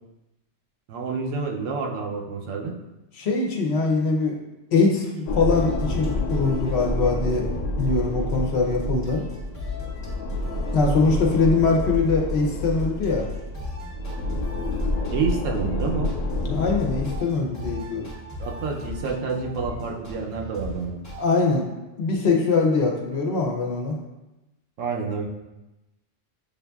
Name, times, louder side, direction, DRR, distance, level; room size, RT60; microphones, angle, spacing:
voice 1, 0.9-2.7 15.1-16.1 18.4-21.0 24.8-25.3, right 4 dB, 85° right, 1 dB, 1.0 m, -28 dB
voice 2, 3.2-4.4 4.7-7.5 7.8-9.2 10.7-13.3 16.4-18.1 21.2-21.6 22.0-24.0, left 3 dB, 65° left, 0 dB, 0.9 m, -22 dB
sound 1, 5.3-17.2, left 1 dB, 85° left, 1.0 m, -29 dB
sound 2, 5.5-21.3, left 3 dB, 15° left, 0.7 m, -37 dB
6.8 x 2.6 x 2.3 m, 1.0 s
omnidirectional pair, 1.3 m